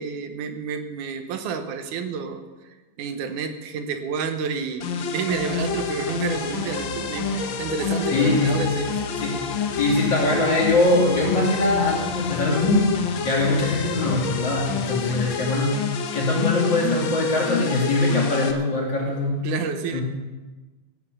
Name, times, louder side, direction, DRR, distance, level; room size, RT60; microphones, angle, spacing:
voice 1, 0.0-2.4 3.0-8.9 19.4-20.0, right 6 dB, 80° right, 7 dB, 2.4 m, -29 dB
sound 1, 4.8-18.5, left 7 dB, 80° left, 1.1 m, -29 dB
sound 2, 5.3-15.3, right 2 dB, 65° right, 2.8 m, -38 dB
voice 2, 8.1-8.7 9.1-12.9 13.2-15.8 16.1-19.4 19.9-20.0, left 2 dB, 40° left, -3 dB, 3.0 m, -22 dB
16.0 x 8.1 x 6.7 m, 1.2 s
omnidirectional pair, 3.5 m